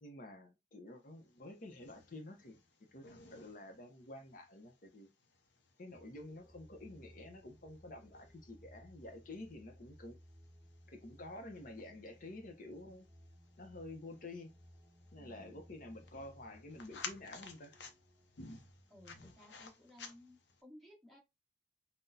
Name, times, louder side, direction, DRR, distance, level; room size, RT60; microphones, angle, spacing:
voice 1, 0.0-2.6 2.9-5.1 5.8-10.2 10.9-13.1 13.6-14.5 15.1-17.7, left 2 dB, 50° left, 0.7 m, -50 dB
sound 1, 1.2-20.6, left 5 dB, 85° left, 0.7 m, -56 dB
sound 2, 5.9-19.3, equal, 15° right, 1.0 m, -61 dB
voice 2, 15.1-15.6 18.9-21.2, left 1 dB, ahead, 1.5 m, -59 dB
5.7 x 2.2 x 2.7 m
head